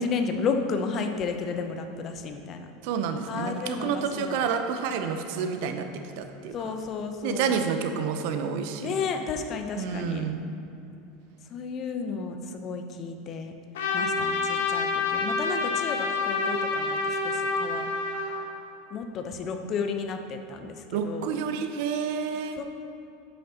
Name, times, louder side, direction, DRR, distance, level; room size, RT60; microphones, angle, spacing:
voice 1, 0.0-2.7 3.3-4.5 6.5-7.6 8.8-10.2 11.5-13.5 13.9-17.9 18.9-21.3 22.6-22.7, left 5 dB, 40° left, 6 dB, 0.8 m, -32 dB
voice 2, 2.8-6.6 7.2-9.0 9.8-10.5 20.9-22.6, right 6 dB, 60° right, 7 dB, 0.7 m, -29 dB
Trumpet, 13.7-18.4, left 4 dB, 70° left, 1.1 m, -27 dB
9.9 x 8.4 x 2.9 m, 2.8 s
figure-of-eight pair, 80°, 0 cm